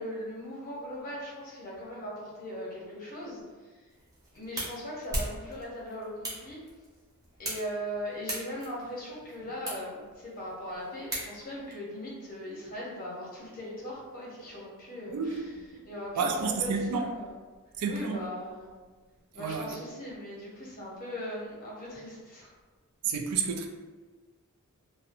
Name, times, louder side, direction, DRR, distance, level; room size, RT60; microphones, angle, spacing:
voice 1, 0.0-3.4 4.3-6.6 7.4-15.5 15.8-17.3 17.9-18.7 19.3-22.5, equal, 40° left, 0.7 m, -39 dB
sound 1, 3.9-11.7, right 1 dB, 15° right, 0.5 m, -40 dB
voice 2, 15.1-15.5 16.2-17.1 17.8-18.2 19.4-19.8 23.0-23.7, right 5 dB, 85° right, 0.4 m, -30 dB
2.7 x 2.0 x 2.5 m
head